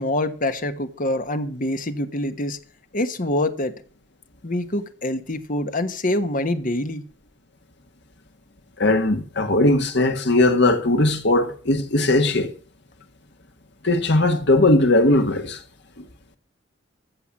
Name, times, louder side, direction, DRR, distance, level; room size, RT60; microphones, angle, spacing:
voice 1, 0.0-2.6 2.9-3.8 4.4-7.0, left 1 dB, 45° left, 1.3 m, -25 dB
voice 2, 8.8-12.5 13.8-15.6, left 2 dB, 60° left, 1.7 m, -19 dB
15.0 x 7.0 x 7.2 m
head